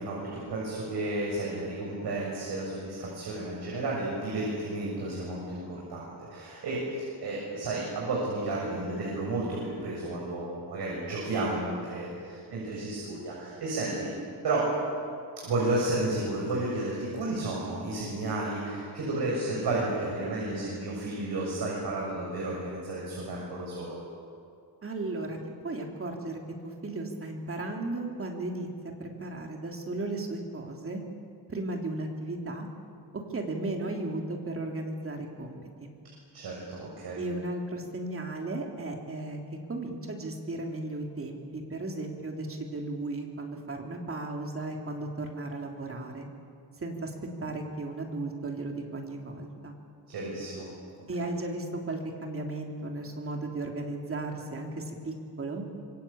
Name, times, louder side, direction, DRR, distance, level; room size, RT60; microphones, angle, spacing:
voice 1, 0.0-14.1 14.4-14.7 15.4-24.0 36.3-37.2 50.1-50.7, right 2 dB, 75° right, -4 dB, 7.0 m, -32 dB
voice 2, 24.8-25.4 25.6-28.7 29.0-31.0 31.5-32.7 33.1-35.9 37.2-39.4 39.7-46.2 46.8-47.1 47.4-49.7 51.1-55.7, right 2 dB, 35° right, 2 dB, 3.1 m, -35 dB
26.0 x 23.0 x 8.6 m, 2.3 s
wide cardioid pair, 155°, 39 cm